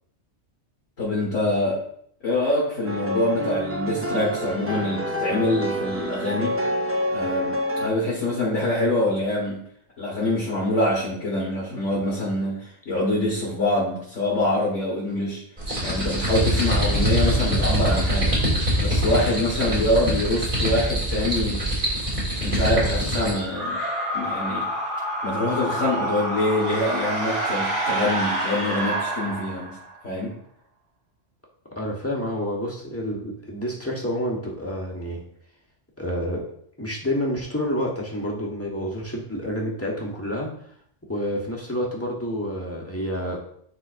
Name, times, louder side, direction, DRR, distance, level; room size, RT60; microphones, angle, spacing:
voice 1, 1.0-1.8 2.2-6.6 7.1-9.6 10.0-15.4 15.8-21.6 22.4-23.8 24.1-24.7 25.2-29.7 30.0-30.3, left 1 dB, 90° left, -7 dB, 2.1 m, -25 dB
sound 1, 2.8-7.9, equal, 20° right, 0.4 m, -27 dB
sound 2, 15.6-23.4, equal, 40° right, 2.1 m, -24 dB
sound 3, 23.5-29.9, right 1 dB, 80° right, 2.4 m, -27 dB
voice 2, 31.8-35.2 36.0-36.4 36.8-40.5 41.1-43.4, equal, 10° left, -3 dB, 1.2 m, -28 dB
10.0 x 3.7 x 2.6 m, 0.66 s
omnidirectional pair, 1.2 m